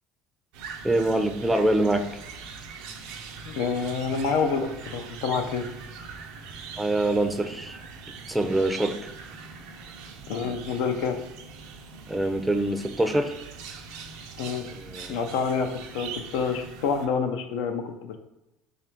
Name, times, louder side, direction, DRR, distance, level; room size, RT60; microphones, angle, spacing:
sound 1, 0.5-17.1, right 5 dB, 75° right, 0.5 m, -42 dB
voice 1, 0.8-2.0 6.8-7.8 8.3-9.0 10.4-10.5 12.1-13.3 14.7-15.2, right 1 dB, 10° right, 7 dB, 0.4 m, -24 dB
voice 2, 3.5-5.6 10.3-11.2 14.4-14.6 15.1-15.7 15.9-18.2, left 5 dB, 75° left, 6 dB, 0.4 m, -27 dB
3.3 x 2.4 x 4.4 m, 0.94 s
supercardioid pair, 90°, 0 cm